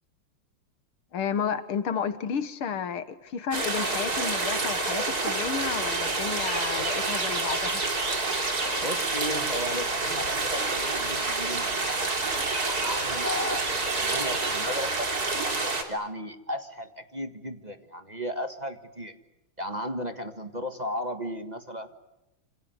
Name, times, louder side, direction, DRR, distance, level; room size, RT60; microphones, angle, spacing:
voice 1, 1.1-7.8, left 7 dB, 85° left, 12 dB, 2.4 m, -31 dB
sound 1, 3.5-15.8, right 3 dB, 45° right, 3.9 m, -28 dB
sound 2, 5.6-14.5, right 3 dB, 70° right, 4.4 m, -38 dB
voice 2, 8.8-12.1 12.7-15.1 15.9-19.1 19.6-21.9, left 1 dB, 20° right, 7 dB, 1.7 m, -35 dB
28.0 x 27.0 x 8.0 m, 0.90 s
omnidirectional pair, 2.3 m